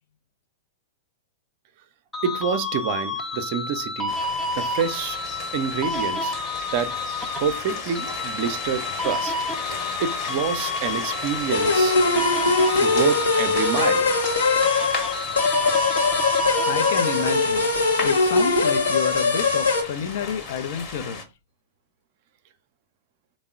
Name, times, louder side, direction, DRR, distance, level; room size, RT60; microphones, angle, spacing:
sound 1, 2.1-17.4, left 3 dB, 10° left, 0.6 m, -30 dB
voice 1, 2.2-4.1 4.5-5.2 5.5-6.4 6.7-7.0 7.4-9.3 10.0-12.0 12.8-14.1, right 7 dB, 50° right, 0.5 m, -27 dB
sound 2, 4.1-21.2, left 4 dB, 30° left, 1.0 m, -35 dB
sound 3, 11.5-19.8, left 3 dB, 75° left, 1.0 m, -21 dB
voice 2, 16.7-17.7 18.0-21.2, left 7 dB, 55° left, 0.5 m, -30 dB
3.5 x 2.0 x 3.6 m
figure-of-eight pair, 100°, 0 cm